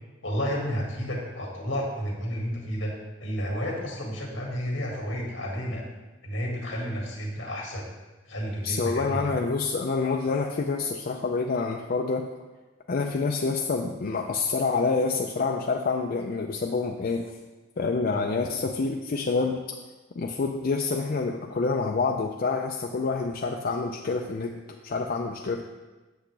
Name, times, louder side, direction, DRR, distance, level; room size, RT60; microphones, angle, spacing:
voice 1, 0.2-2.9 3.2-5.8 6.2-7.8 8.3-9.3 18.1-18.2, equal, 75° left, -1 dB, 1.9 m, -31 dB
voice 2, 8.6-12.3 12.9-17.2 17.8-19.6 20.2-24.5 24.8-25.6, left 4 dB, 50° left, 2 dB, 0.5 m, -27 dB
8.1 x 7.0 x 3.3 m, 1.2 s
head